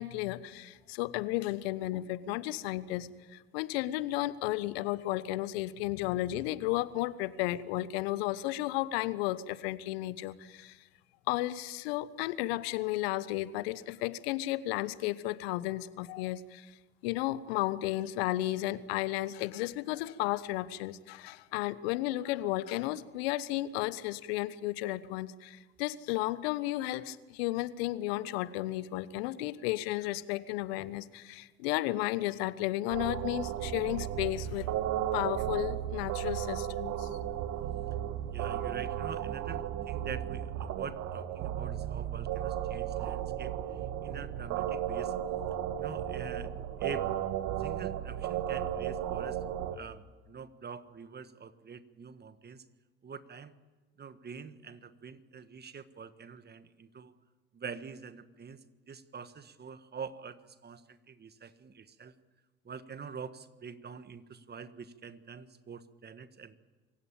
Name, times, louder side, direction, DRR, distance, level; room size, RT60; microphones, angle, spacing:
voice 1, 0.0-10.8 11.3-16.7 17.0-34.7 35.1-37.1, left 16 dB, 75° left, 17 dB, 1.0 m, -33 dB
sound 1, 32.9-49.8, right 11 dB, 60° right, 1.6 m, -34 dB
voice 2, 38.3-45.1 45.8-46.5 46.8-47.0 47.6-49.4 49.7-52.6 53.0-53.5 54.0-57.1 57.5-58.6 58.9-62.1 62.6-66.6, right 6 dB, 30° right, 12 dB, 1.5 m, -45 dB
26.5 x 16.0 x 8.8 m, 1.3 s
hypercardioid pair, 60°, 31 cm